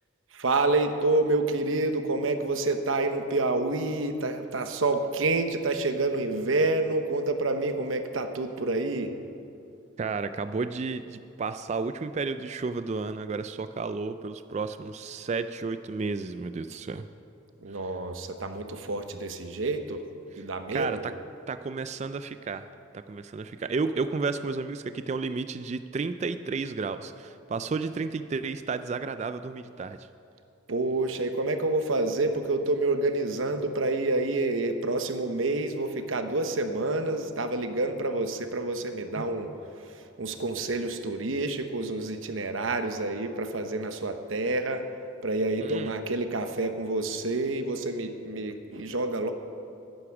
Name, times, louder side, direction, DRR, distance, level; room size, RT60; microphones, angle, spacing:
voice 1, 0.3-9.1 17.6-20.0 20.4-21.0 30.7-39.5 39.9-44.8 45.2-49.3, right 2 dB, 85° right, 7 dB, 0.9 m, -28 dB
voice 2, 10.0-17.1 17.7-17.8 20.3-21.1 21.5-22.7 22.9-30.1 39.2-39.3 45.6-45.9, right 4 dB, 35° right, 11 dB, 0.3 m, -32 dB
12.0 x 9.8 x 6.0 m, 2.6 s
head